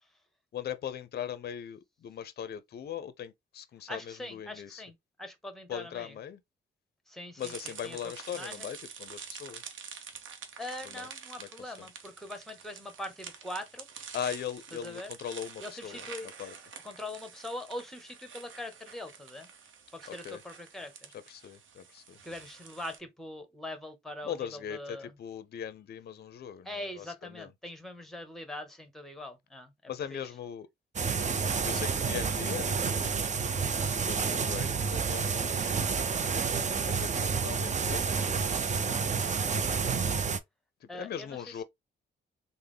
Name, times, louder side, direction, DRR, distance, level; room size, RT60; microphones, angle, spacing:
voice 1, 0.5-4.8 5.7-6.4 7.4-9.6 10.8-11.1 11.4-11.9 14.1-16.0 16.4-16.5 20.1-20.4 21.1-22.2 24.2-27.5 29.9-30.7 31.6-33.4 34.0-36.0 36.8-38.7 40.8-41.6, left 9 dB, 50° left, 0.5 m, -40 dB
voice 2, 3.9-6.2 7.1-8.7 10.6-13.9 14.7-15.1 15.6-16.3 16.8-19.5 19.9-21.1 22.2-25.1 26.6-30.2 35.6-35.9 40.9-41.6, left 1 dB, ahead, 1.0 m, -42 dB
sound 1, 7.4-23.0, right 6 dB, 70° right, 0.8 m, -47 dB
sound 2, 31.0-40.4, right 5 dB, 35° right, 0.5 m, -29 dB
3.5 x 2.0 x 3.3 m
cardioid pair, 80°, 20 cm